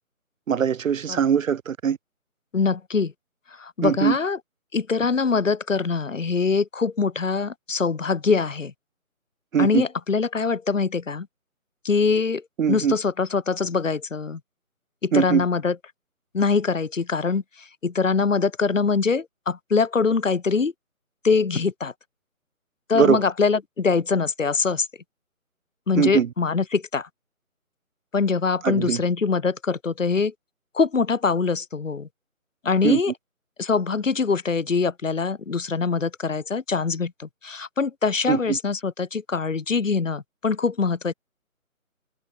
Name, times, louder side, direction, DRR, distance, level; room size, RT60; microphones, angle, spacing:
voice 1, 0.5-2.0 3.8-4.2 9.5-9.8 12.6-13.0 15.1-15.4 22.9-23.2 26.0-26.3 28.6-29.0 32.8-33.0 38.3-38.6, right 8 dB, 65° right, 0.5 m, -21 dB
voice 2, 2.5-3.1 3.6-4.4 4.7-8.7 9.6-11.3 11.8-12.4 12.7-14.4 15.0-15.8 16.3-17.4 17.8-20.7 21.2-21.9 22.9-24.9 25.9-27.1 28.1-30.3 30.7-32.1 32.6-33.1 33.6-41.1, left 5 dB, 60° left, 1.3 m, -23 dB
figure-of-eight pair, 175°, 43 cm